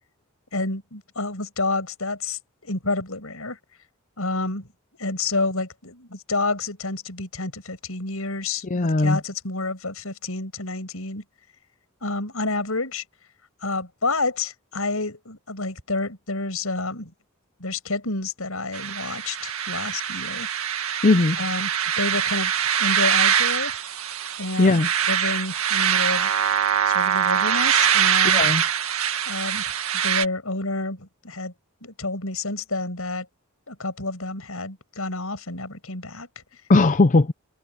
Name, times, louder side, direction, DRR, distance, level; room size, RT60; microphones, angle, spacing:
voice 1, 0.5-3.6 4.2-4.7 5.0-11.2 12.0-13.0 13.6-17.1 17.6-20.5 21.4-21.7 22.0-23.7 24.4-24.7 25.1-26.3 26.8-28.4 29.2-29.6 30.0-31.5 31.8-33.3 33.7-36.3, left 3 dB, 75° left, 6.6 m, -29 dB
voice 2, 8.6-9.2 21.0-21.4 24.6-24.9 28.2-28.6 36.7-37.3, left 3 dB, 35° left, 0.6 m, -18 dB
sound 1, 18.7-30.2, right 8 dB, 75° right, 1.9 m, -23 dB
head